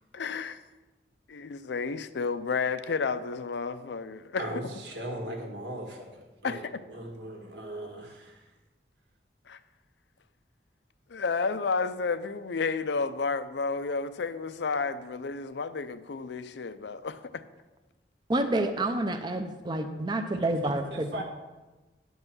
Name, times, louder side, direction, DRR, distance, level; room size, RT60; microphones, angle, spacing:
voice 1, 0.1-0.6 1.3-4.5 6.4-6.6 9.5-9.6 11.1-17.4, left 4 dB, 75° left, 0.5 m, -31 dB
voice 2, 4.4-6.6 6.9-8.4 20.9-21.2, right 1 dB, 75° right, 1.8 m, -38 dB
voice 3, 18.3-21.2, right 1 dB, 25° right, 0.6 m, -29 dB
10.5 x 5.5 x 6.1 m
head